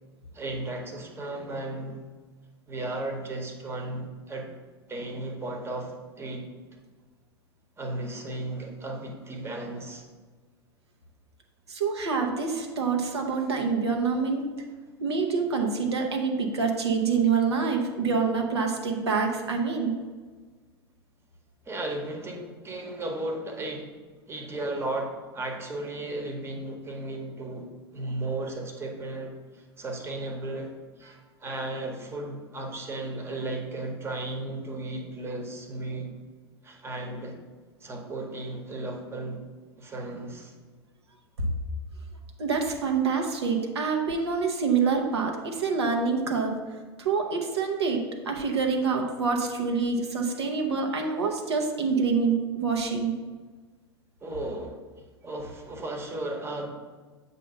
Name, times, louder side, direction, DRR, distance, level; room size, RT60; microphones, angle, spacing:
voice 1, 0.3-2.1 2.7-4.5 4.9-6.5 7.8-10.0 21.6-23.9 24.3-36.1 36.6-37.4 37.8-39.4 39.8-40.5 54.2-54.8 55.2-56.7, right 2 dB, 20° right, 2 dB, 1.0 m, -35 dB
voice 2, 11.7-14.5 15.0-19.9 41.4-41.5 42.4-46.5 47.0-53.1, right 5 dB, 80° right, 2 dB, 0.8 m, -26 dB
7.4 x 2.7 x 5.4 m, 1.4 s
figure-of-eight pair, 90°, 14 cm